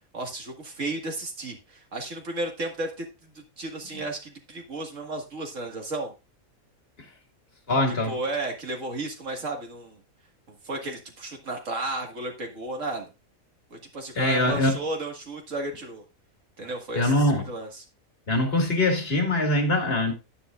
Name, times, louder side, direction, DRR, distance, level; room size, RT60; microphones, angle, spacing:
voice 1, 0.1-6.1 8.1-10.0 10.6-13.1 13.7-16.0 16.6-17.7, right 2 dB, 60° right, 2.2 m, -33 dB
voice 2, 7.7-8.2 14.2-14.8 16.9-17.4 18.3-20.1, left 1 dB, 45° left, 2.2 m, -23 dB
10.5 x 9.8 x 2.5 m
omnidirectional pair, 1.5 m